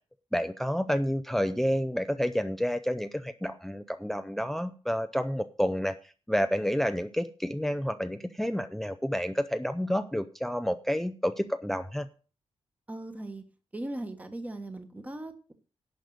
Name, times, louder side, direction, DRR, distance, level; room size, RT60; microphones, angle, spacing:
voice 1, 0.3-6.0 6.3-12.1, equal, 5° left, 11 dB, 0.5 m, -29 dB
voice 2, 12.9-13.4 13.7-15.5, right 1 dB, 15° right, 7 dB, 1.3 m, -38 dB
11.0 x 5.3 x 7.8 m, 0.36 s
wide cardioid pair, 165°, 11 cm